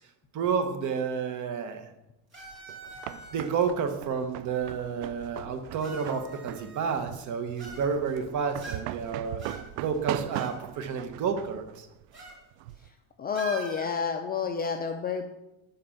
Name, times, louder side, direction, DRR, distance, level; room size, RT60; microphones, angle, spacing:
voice 1, 0.3-1.9 3.3-9.4 9.8-11.9, right 6 dB, 40° right, 7 dB, 1.2 m, -30 dB
sound 1, 2.3-3.7 4.6-4.7 5.8-7.1 7.6-8.2 8.6-9.1 9.4-10.6 10.9-11.0 12.1-12.4 12.7-12.9 13.3-14.0, right 2 dB, 25° right, 2.8 m, -44 dB
sound 2, 2.4-12.9, right 14 dB, 80° right, 0.6 m, -40 dB
voice 2, 13.2-15.2, left 6 dB, 20° left, 5 dB, 0.4 m, -29 dB
10.5 x 4.3 x 7.1 m, 0.93 s
cardioid pair, 160°, 44 cm